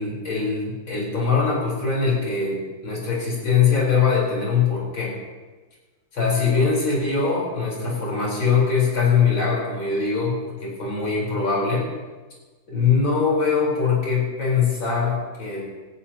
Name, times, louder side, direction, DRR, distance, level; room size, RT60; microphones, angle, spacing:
voice 1, 0.0-5.2 6.1-11.9 12.7-15.7, left 5 dB, 75° left, -4 dB, 5.1 m, -22 dB
19.5 x 15.0 x 2.9 m, 1.3 s
omnidirectional pair, 2.2 m